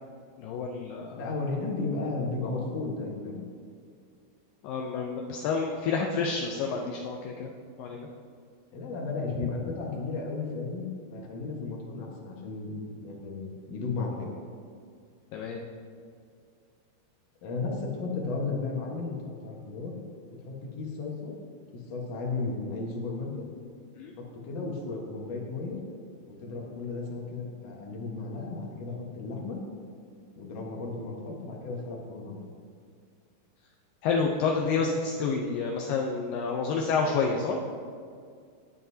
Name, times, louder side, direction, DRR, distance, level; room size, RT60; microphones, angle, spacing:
voice 1, 0.4-1.2 4.6-7.5 7.8-8.1 15.3-15.6 24.0-24.1 34.0-37.6, left 4 dB, 80° left, 1 dB, 2.1 m, -29 dB
voice 2, 1.2-3.4 8.7-14.3 17.4-19.9 20.4-21.3 21.9-23.3 24.2-25.8 26.3-29.6 30.4-32.4, left 3 dB, 60° left, -2 dB, 1.8 m, -34 dB
19.5 x 7.7 x 2.8 m, 2.2 s
omnidirectional pair, 4.7 m